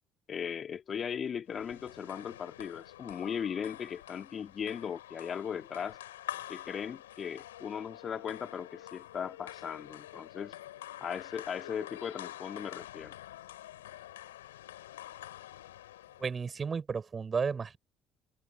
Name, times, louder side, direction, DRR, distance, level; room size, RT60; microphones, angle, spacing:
voice 1, 0.3-6.0 6.5-10.6 11.0-13.2, left 7 dB, 50° left, 2.2 m, -38 dB
sound 1, 1.5-16.4, left 13 dB, 90° left, 4.4 m, -47 dB
voice 2, 16.2-17.8, right 5 dB, 35° right, 6.2 m, -33 dB
hypercardioid pair, 60°, 0 cm